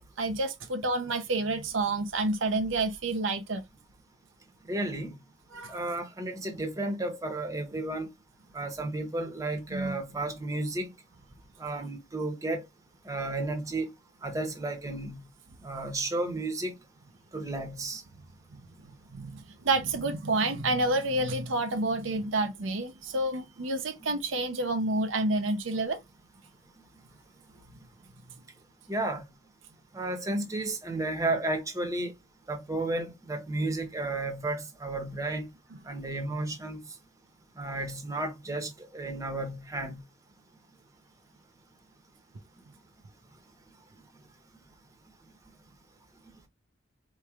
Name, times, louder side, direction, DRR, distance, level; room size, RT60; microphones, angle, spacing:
voice 1, 0.0-3.6 5.5-5.8 9.7-10.0 19.1-26.0, right 2 dB, 75° right, 0.7 m, -29 dB
voice 2, 4.7-5.1 5.7-8.1 8.5-10.9 11.6-12.6 13.0-13.9 14.2-15.2 15.6-16.7 17.3-18.0 28.9-29.2 29.9-32.1 32.5-35.5 35.9-36.8 37.6-40.0, right 2 dB, 15° right, 1.0 m, -32 dB
4.5 x 3.0 x 2.4 m
head